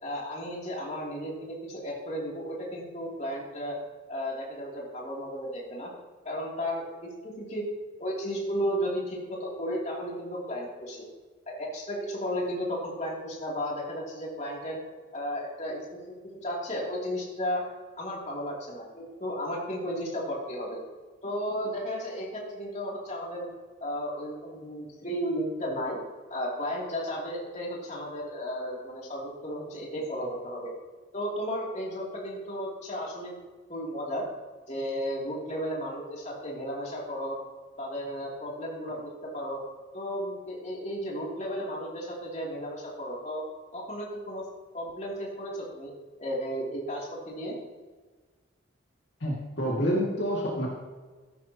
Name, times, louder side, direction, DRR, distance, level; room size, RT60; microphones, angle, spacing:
voice 1, 0.0-3.8 4.1-5.9 6.2-6.8 7.2-7.6 8.0-11.1 11.5-14.8 15.1-15.8 16.4-17.6 18.0-20.8 21.2-23.5 23.8-26.0 26.3-30.7 31.1-33.3 33.7-34.2 34.7-37.4 37.8-39.6 39.9-43.4 43.7-44.4 44.7-45.9 46.2-47.5, equal, 35° left, -3 dB, 2.8 m, -34 dB
voice 2, 49.2-50.7, equal, 60° left, -4 dB, 2.1 m, -28 dB
14.0 x 12.0 x 2.9 m, 1.4 s
head